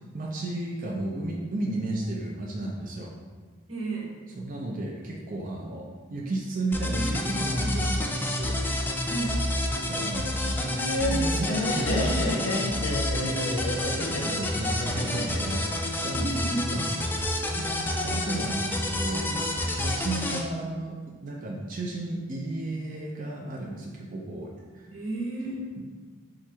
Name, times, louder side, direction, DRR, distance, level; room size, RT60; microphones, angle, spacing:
voice 1, 0.1-3.1 4.4-8.6 9.9-10.7 11.0-19.5 19.8-24.9, right 2 dB, 45° right, -3 dB, 0.5 m, -34 dB
voice 2, 3.7-4.1 9.1-9.4 16.1-16.7 24.9-25.7, right 2 dB, 85° right, -2 dB, 1.0 m, -32 dB
sound 1, 6.7-20.4, left 1 dB, 10° left, 0.3 m, -29 dB
Laughter, 10.5-15.6, left 1 dB, 90° left, 0.7 m, -30 dB
4.6 x 2.5 x 4.3 m, 1.5 s
head